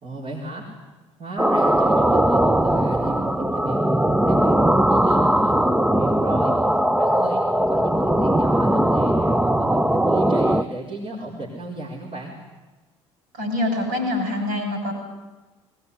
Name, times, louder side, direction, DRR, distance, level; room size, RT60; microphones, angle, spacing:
voice 1, 0.0-0.8 1.2-6.6 7.0-7.4 7.7-12.4, right 2 dB, 40° right, -4 dB, 4.7 m, -35 dB
sound 1, 1.4-10.6, right 1 dB, 5° right, 0.8 m, -19 dB
voice 2, 13.3-14.9, left 1 dB, 60° right, 3 dB, 7.4 m, -25 dB
21.5 x 17.5 x 9.9 m, 1.2 s
figure-of-eight pair, 60°, 16 cm